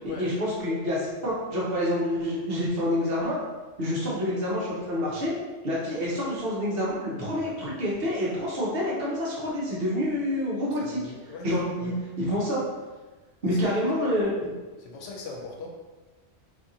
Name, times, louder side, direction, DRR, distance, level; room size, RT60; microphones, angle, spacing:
voice 1, 0.2-3.4 3.8-5.3 5.6-11.0 11.4-12.6 13.4-14.5, left 1 dB, 55° right, -6 dB, 1.0 m, -27 dB
voice 2, 10.7-11.5 11.8-12.0 13.4-13.6 14.0-14.1 14.8-15.7, left 4 dB, 85° left, 0 dB, 0.9 m, -40 dB
2.7 x 2.5 x 2.7 m, 1.2 s
omnidirectional pair, 1.2 m